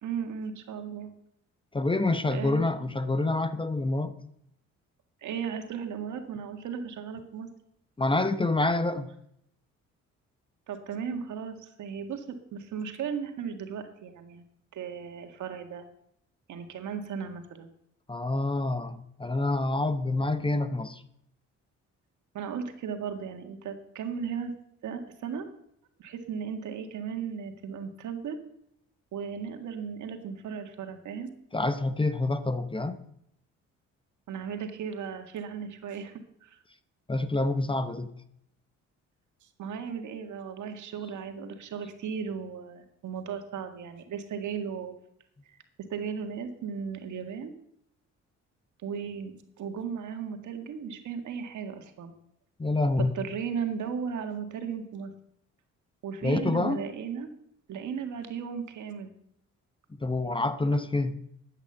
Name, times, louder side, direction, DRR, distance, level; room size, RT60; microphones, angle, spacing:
voice 1, 0.0-1.1 2.3-2.6 5.2-7.5 10.7-14.4 14.7-15.8 16.5-17.7 22.3-24.5 24.8-25.5 26.0-28.4 29.1-31.3 34.3-36.1 36.4-36.6 39.4-44.9 45.5-45.6 45.9-47.5 48.8-52.1 53.2-55.1 56.0-57.3 57.7-59.1, right 7 dB, 75° right, 6 dB, 1.9 m, -36 dB
voice 2, 1.7-4.1 8.0-9.1 18.1-21.0 31.5-33.0 37.1-38.1 52.6-53.2 56.2-56.8 60.0-61.2, left 2 dB, 15° left, 11 dB, 0.9 m, -27 dB
12.0 x 9.0 x 7.9 m, 0.75 s
cardioid pair, 90°, 30 cm